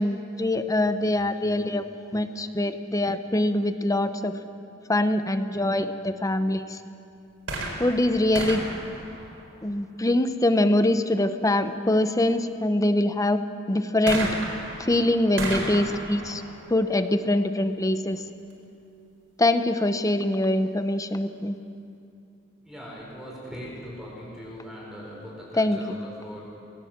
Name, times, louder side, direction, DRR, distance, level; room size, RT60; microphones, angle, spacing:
voice 1, 0.0-1.8 2.1-4.4 4.9-6.8 7.8-8.6 9.6-13.4 13.7-14.3 14.8-16.4 16.7-18.2 19.4-21.6 25.5-25.8, left 1 dB, 20° left, 10 dB, 0.8 m, -23 dB
sound 1, 7.4-10.0 14.1-17.7 18.5-18.6, right 2 dB, 85° right, 4.4 m, -34 dB
voice 2, 22.6-26.4, equal, ahead, -5 dB, 4.8 m, -40 dB
21.0 x 18.0 x 7.4 m, 2.6 s
head